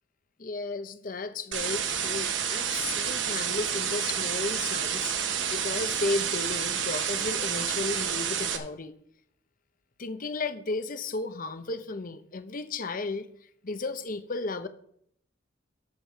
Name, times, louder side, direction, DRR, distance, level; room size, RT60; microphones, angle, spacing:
voice 1, 0.4-8.9 10.0-13.3 13.6-14.7, left 3 dB, 45° left, 0.8 m, -34 dB
sound 1, 1.5-8.6, right 8 dB, 70° right, 1.1 m, -29 dB
13.5 x 6.7 x 4.6 m
head